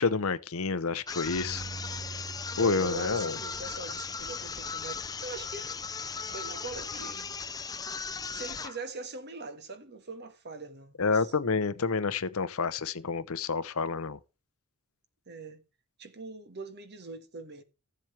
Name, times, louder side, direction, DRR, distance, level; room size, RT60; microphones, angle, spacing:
voice 1, 0.0-1.6 2.6-3.3 11.0-14.2, left 4 dB, 65° left, 0.7 m, -29 dB
sound 1, 1.1-8.8, left 5 dB, 15° left, 0.5 m, -37 dB
Bass guitar, 1.3-7.5, right 3 dB, 30° right, 0.8 m, -47 dB
voice 2, 2.5-5.8 6.2-7.4 8.2-11.3 15.3-15.6 16.0-17.6, right 4 dB, 50° right, 1.6 m, -42 dB
15.0 x 7.5 x 3.3 m
head